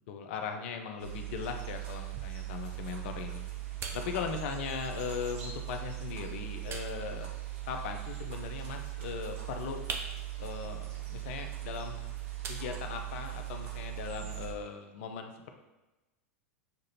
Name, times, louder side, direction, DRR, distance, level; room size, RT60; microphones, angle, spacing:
voice 1, 0.1-3.5 3.9-7.3 7.7-9.8 10.4-12.1 12.5-15.5, left 6 dB, 60° left, 5 dB, 0.5 m, -39 dB
sound 1, 1.0-14.5, right 16 dB, 60° right, 0.8 m, -40 dB
sound 2, 1.5-13.5, right 4 dB, 30° right, 0.5 m, -48 dB
6.6 x 2.5 x 2.8 m, 1.1 s
hypercardioid pair, 90°, 8 cm